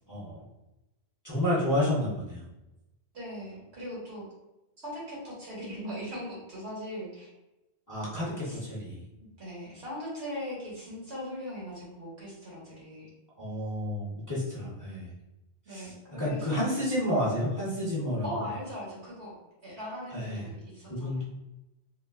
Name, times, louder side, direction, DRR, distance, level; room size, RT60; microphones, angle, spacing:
voice 1, 0.1-0.4 1.2-2.5 7.9-9.0 13.4-15.1 15.7-15.9 16.2-18.3 20.1-20.4 20.9-21.2, left 1 dB, 20° left, -8 dB, 0.7 m, -30 dB
voice 2, 3.1-4.3 4.8-7.3 8.0-8.1 8.4-8.6 9.2-13.1 15.6-16.7 18.2-19.4 19.6-21.2, equal, 75° right, -6 dB, 1.5 m, -39 dB
3.6 x 2.0 x 2.3 m, 0.94 s
omnidirectional pair, 1.1 m